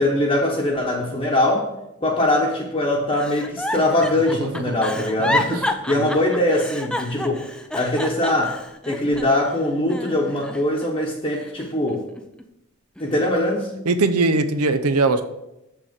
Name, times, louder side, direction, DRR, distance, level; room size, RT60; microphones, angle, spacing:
voice 1, 0.0-1.7 2.0-7.4 7.7-12.0 13.0-13.7, left 1 dB, 25° left, -4 dB, 1.0 m, -22 dB
Giggle, 3.1-9.5 9.9-10.9 11.3-12.4 13.0-13.3, left 1 dB, 5° left, 0.4 m, -29 dB
voice 2, 4.3-4.7 5.9-6.1 13.9-15.3, right 3 dB, 85° right, 10 dB, 0.7 m, -20 dB
7.5 x 6.6 x 5.1 m, 0.90 s
head